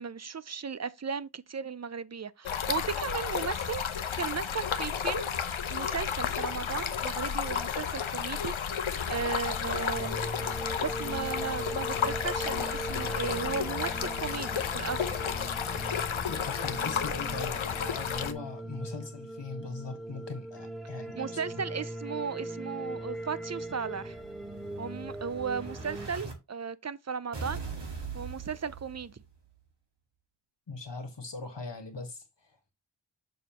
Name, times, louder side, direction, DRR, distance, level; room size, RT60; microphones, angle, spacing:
voice 1, 0.0-5.3 5.7-15.1 21.2-24.2 24.8-27.6 28.1-29.2, right 6 dB, 35° right, 0.5 m, -36 dB
Stream, 2.5-18.3, left 7 dB, 90° left, 0.8 m, -32 dB
sound 1, 9.3-26.1, right 1 dB, ahead, 1.2 m, -40 dB
voice 2, 16.3-21.6 30.7-32.7, left 3 dB, 65° left, 1.7 m, -40 dB
Explosion, 23.0-26.3 27.3-29.3, right 4 dB, 60° right, 2.2 m, -42 dB
6.8 x 6.3 x 3.0 m
wide cardioid pair, 70°, 46 cm